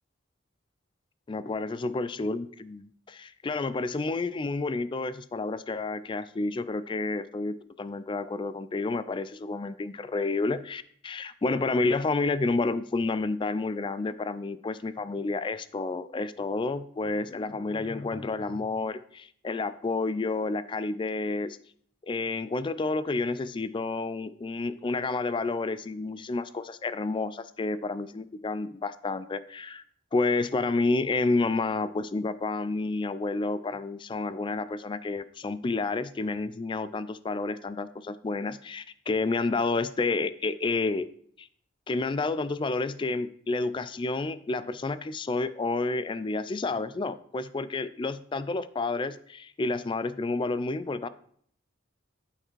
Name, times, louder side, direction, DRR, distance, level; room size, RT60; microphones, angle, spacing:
voice 1, 1.3-21.6 22.0-29.8 30.1-41.1 41.4-41.5 41.9-51.1, left 3 dB, 25° left, 15 dB, 0.3 m, -30 dB
8.7 x 4.9 x 4.6 m, 0.62 s
head